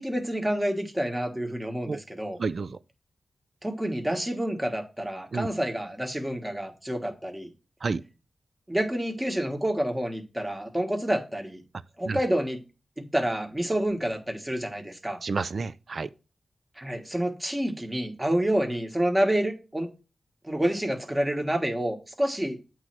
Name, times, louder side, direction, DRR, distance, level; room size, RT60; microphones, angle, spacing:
voice 1, 0.0-2.4 3.6-7.5 8.7-11.6 12.0-12.6 13.0-15.2 16.8-19.9 20.4-22.6, right 1 dB, 15° right, 1.4 m, -28 dB
voice 2, 2.4-2.8 5.3-5.5 7.8-8.0 12.0-12.2 15.2-16.1, right 4 dB, 60° right, 0.4 m, -30 dB
8.0 x 3.1 x 5.9 m
cardioid pair, 70°, 0 cm